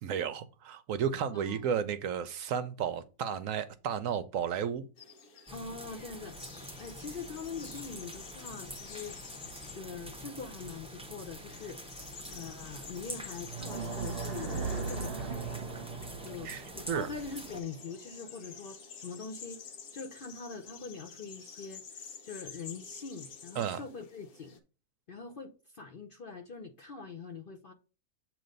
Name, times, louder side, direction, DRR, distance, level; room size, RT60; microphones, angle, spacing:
voice 1, 0.0-4.9 16.4-17.1 23.6-23.8, right 8 dB, 70° right, 0.9 m, -33 dB
sound 1, 5.0-24.6, left 6 dB, 70° left, 1.6 m, -50 dB
voice 2, 5.5-6.4 6.8-9.2 9.7-11.8 12.3-15.4 16.2-19.6 19.9-24.6 25.1-27.7, left 5 dB, 50° left, 0.6 m, -43 dB
sound 2, 5.5-17.6, equal, 10° right, 0.4 m, -46 dB
sound 3, 13.4-18.5, right 4 dB, 45° right, 1.1 m, -39 dB
7.7 x 3.1 x 5.2 m
omnidirectional pair, 1.6 m